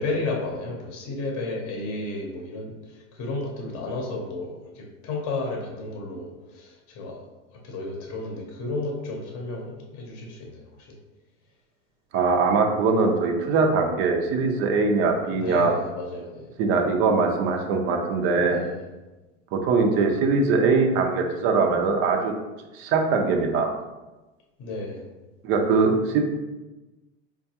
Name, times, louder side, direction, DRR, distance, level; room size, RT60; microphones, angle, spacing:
voice 1, 0.0-7.2 7.6-10.7 15.3-16.5 18.4-18.8 24.6-25.0, left 2 dB, 35° left, 0 dB, 0.8 m, -32 dB
voice 2, 12.1-15.7 16.6-18.6 19.5-22.3 22.7-23.7 25.4-26.2, right 4 dB, 35° right, 3 dB, 0.5 m, -22 dB
4.5 x 2.3 x 2.8 m, 1.1 s
hypercardioid pair, 125°, 39 cm